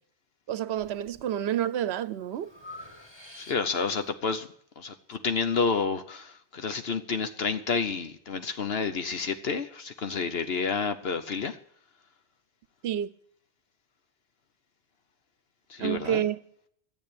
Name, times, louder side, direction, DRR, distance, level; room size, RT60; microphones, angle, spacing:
voice 1, 0.5-2.5 12.8-13.1 15.8-16.4, right 11 dB, 70° right, 1.0 m, -29 dB
Breathing, 0.8-1.3 1.7-4.0, left 2 dB, 25° left, 1.9 m, -48 dB
voice 2, 3.3-4.5 4.8-11.6 15.7-16.2, left 5 dB, 65° left, 1.1 m, -30 dB
12.5 x 8.4 x 8.5 m
omnidirectional pair, 1.1 m